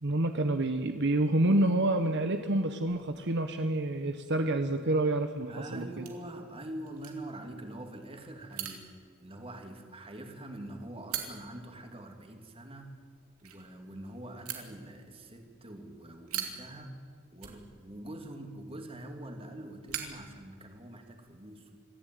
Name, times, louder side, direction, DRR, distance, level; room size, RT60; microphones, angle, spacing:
voice 1, 0.0-6.0, right 1 dB, 55° right, 7 dB, 1.1 m, -28 dB
voice 2, 5.5-8.9 9.2-13.0 13.4-17.0 17.3-21.9, right 1 dB, 25° right, 4 dB, 2.7 m, -44 dB
sound 1, 5.9-21.1, right 9 dB, 90° right, 3.1 m, -47 dB
25.0 x 15.0 x 9.3 m, 2.1 s
head